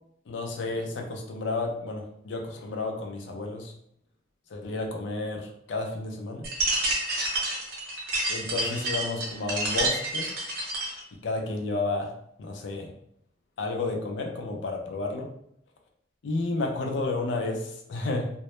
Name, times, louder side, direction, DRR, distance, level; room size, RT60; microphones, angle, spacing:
voice 1, 0.3-3.7 4.5-6.5 8.3-10.3 11.2-12.1 12.4-12.9 13.6-15.3 16.2-18.3, left 3 dB, 75° left, 2 dB, 0.4 m, -31 dB
sound 1, 6.4-11.0, right 2 dB, 50° right, 0.5 m, -29 dB
2.1 x 2.0 x 2.9 m, 0.72 s
head